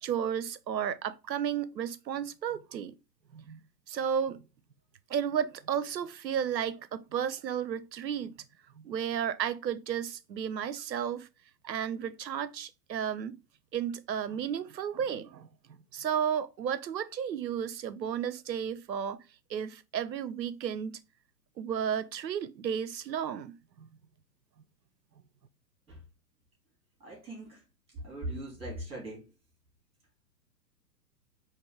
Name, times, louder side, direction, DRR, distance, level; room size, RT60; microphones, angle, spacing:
voice 1, 0.0-2.9 3.3-3.6 3.9-4.4 5.1-8.3 8.8-11.3 11.6-13.4 13.7-19.2 19.5-21.0 21.6-23.9, right 8 dB, 85° right, 0.6 m, -33 dB
voice 2, 27.0-27.6 28.0-29.2, right 1 dB, 10° right, 2.5 m, -40 dB
4.4 x 2.9 x 3.6 m
figure-of-eight pair, 115°, 49 cm